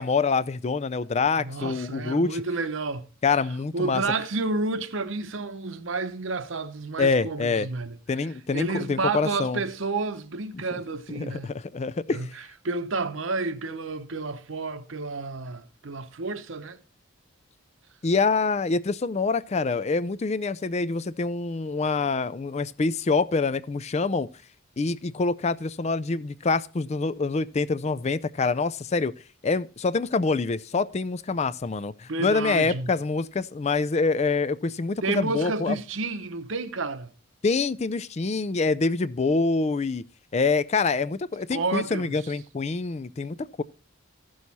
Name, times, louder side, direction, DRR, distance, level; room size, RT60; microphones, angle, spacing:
voice 1, 0.0-2.4 3.2-4.0 7.0-7.7 8.1-9.6 11.1-12.3 18.0-24.3 24.8-29.1 29.4-35.8 37.4-40.0 40.3-43.6, left 4 dB, 30° left, 0.4 m, -26 dB
voice 2, 1.4-3.1 3.7-8.0 8.5-11.5 12.1-12.3 12.6-16.8 32.1-32.9 35.0-37.1 41.5-42.2, right 3 dB, 60° right, 0.9 m, -30 dB
15.0 x 6.4 x 4.1 m
head